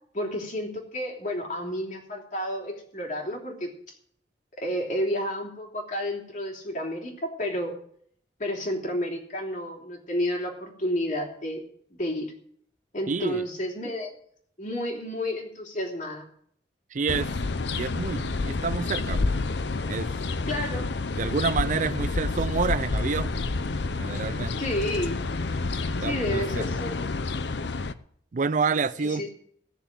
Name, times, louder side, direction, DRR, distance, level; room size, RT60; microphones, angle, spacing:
voice 1, 0.1-3.9 4.6-7.8 8.4-11.6 11.9-12.3 12.9-14.1 14.6-16.2 20.5-20.9 24.6-25.2 26.0-27.0 29.0-29.3, equal, 45° left, 3.2 m, -31 dB
voice 2, 13.1-13.4 16.9-17.3 17.7-19.3 19.9-20.1 21.2-23.4 24.0-24.5 26.0-26.7 28.3-29.3, right 4 dB, 45° right, 0.4 m, -28 dB
sound 1, 17.1-27.9, left 3 dB, 70° left, 0.7 m, -29 dB
16.5 x 6.9 x 7.5 m
head